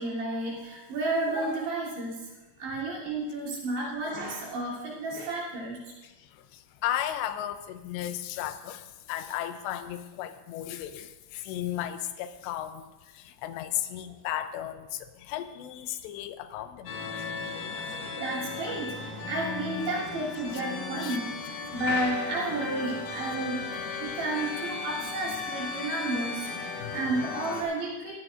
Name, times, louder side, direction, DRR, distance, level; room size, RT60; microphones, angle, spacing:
voice 1, 0.0-2.3 2.6-5.8 18.1-23.7 24.0-28.2, right 2 dB, 75° right, -6 dB, 5.2 m, -32 dB
voice 2, 6.0-12.9 13.1-17.3 17.6-17.9 20.5-20.6 21.0-21.2 26.7-27.0, left 12 dB, 90° left, 10 dB, 2.9 m, -35 dB
sound 1, 16.9-27.6, left 4 dB, 65° left, 2.5 m, -36 dB
18.0 x 13.0 x 2.5 m, 1.1 s
omnidirectional pair, 4.9 m